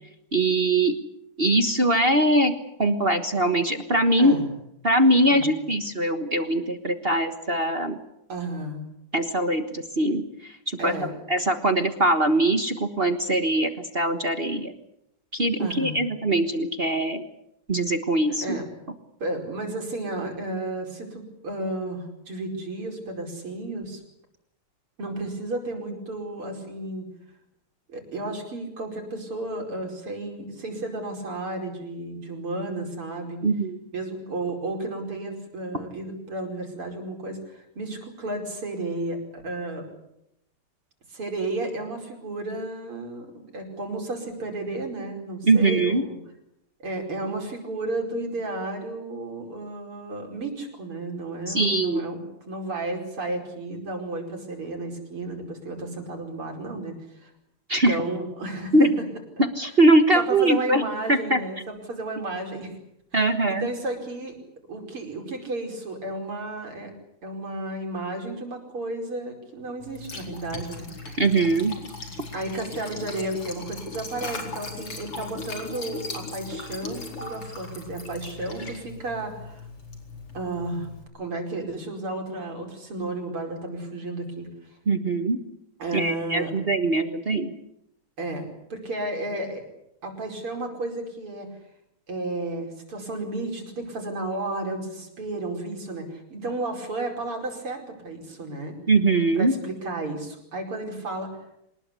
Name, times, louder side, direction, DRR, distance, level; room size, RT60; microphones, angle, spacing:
voice 1, 0.3-0.9 1.4-2.5 2.8-4.4 4.8-8.0 9.1-11.0 11.3-14.7 15.3-17.2 17.7-18.6 33.4-33.8 45.5-46.0 51.5-52.0 57.7-58.0 58.7-58.9 59.5-60.8 61.1-61.4 63.1-63.7 71.2-71.7 84.9-85.4 85.9-87.5 98.9-99.6, right 1 dB, 30° right, 8 dB, 1.3 m, -22 dB
voice 2, 4.2-4.5 5.3-5.5 8.3-8.8 10.8-11.1 15.6-16.1 18.4-18.7 19.2-24.0 25.0-27.1 27.9-33.4 33.9-39.8 41.1-46.2 46.8-57.3 57.9-59.0 60.1-62.7 63.1-63.2 63.5-64.4 64.7-66.9 67.2-70.9 72.3-79.7 80.3-80.9 81.1-84.5 85.8-86.5 88.2-89.6 90.0-91.5 92.1-98.8 99.3-101.3, right 2 dB, 75° right, 3 dB, 5.9 m, -33 dB
Liquid, 69.8-81.0, left 3 dB, 85° left, 5.4 m, -38 dB
25.5 x 20.0 x 8.3 m, 0.80 s
omnidirectional pair, 2.4 m